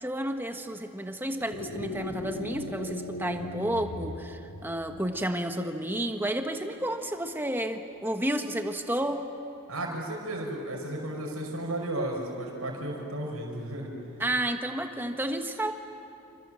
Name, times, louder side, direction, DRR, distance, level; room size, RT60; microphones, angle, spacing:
voice 1, 0.0-9.2 14.2-15.7, right 1 dB, 10° right, 5 dB, 1.4 m, -31 dB
sound 1, 1.5-5.1, left 2 dB, 65° left, 1.6 m, -38 dB
voice 2, 9.7-13.9, right 1 dB, 75° right, -1 dB, 5.5 m, -34 dB
28.0 x 27.0 x 7.7 m, 2.9 s
head